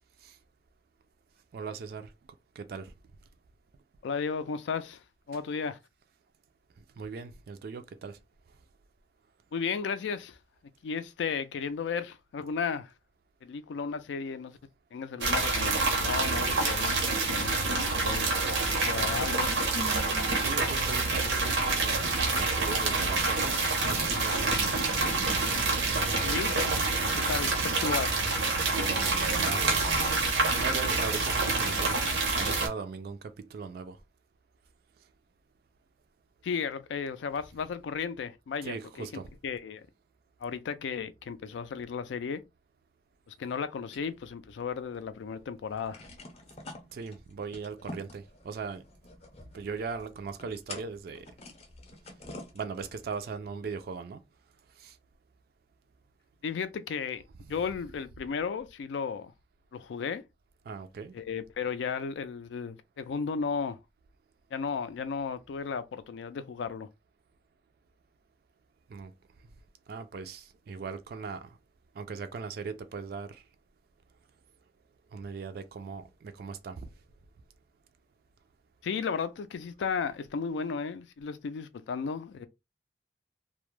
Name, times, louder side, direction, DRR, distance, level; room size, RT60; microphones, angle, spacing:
voice 1, 1.5-2.1 2.6-2.9 7.0-8.2 20.4-24.7 28.8-30.1 30.5-32.0 32.3-34.0 38.6-39.3 46.9-48.8 49.5-51.3 52.5-54.2 54.8-54.9 60.7-61.1 68.9-69.1 69.9-71.5 72.0-73.4 75.1-76.9, right 5 dB, 55° right, 0.3 m, -39 dB
voice 2, 4.0-5.8 9.5-10.4 10.8-12.9 13.4-14.6 14.9-17.6 18.0-18.3 18.8-19.5 26.2-26.5 27.2-28.3 36.4-39.9 40.4-42.4 43.3-46.0 56.4-57.2 57.5-59.3 59.7-60.2 61.1-63.8 64.5-66.9 78.8-82.5, left 6 dB, 85° left, 0.3 m, -34 dB
sound 1, 15.2-32.7, right 3 dB, 90° right, 0.8 m, -27 dB
sound 2, 43.9-45.1 45.4-45.5 45.7-53.3, left 2 dB, 35° left, 0.6 m, -48 dB
2.2 x 2.0 x 3.0 m
head